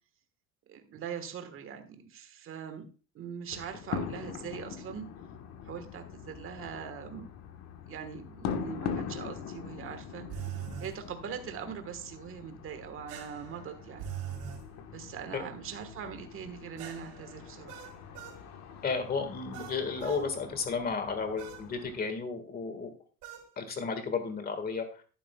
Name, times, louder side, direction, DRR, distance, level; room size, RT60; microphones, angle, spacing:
voice 1, 0.7-2.9 3.1-5.1 5.6-7.3 7.9-14.1 14.9-17.8, right 7 dB, 35° right, 7 dB, 1.4 m, -42 dB
sound 1, 3.5-22.0, left 7 dB, 45° left, 1.3 m, -43 dB
sound 2, 10.3-11.0 13.1-14.6 16.8-18.4 19.5-20.3 21.4-21.7 23.2-23.5, right 9 dB, 75° right, 4.3 m, -42 dB
voice 2, 18.8-22.9 23.6-24.8, left 5 dB, 25° left, 8 dB, 1.7 m, -33 dB
11.0 x 10.5 x 2.3 m, 0.36 s
cardioid pair, 155°, 36 cm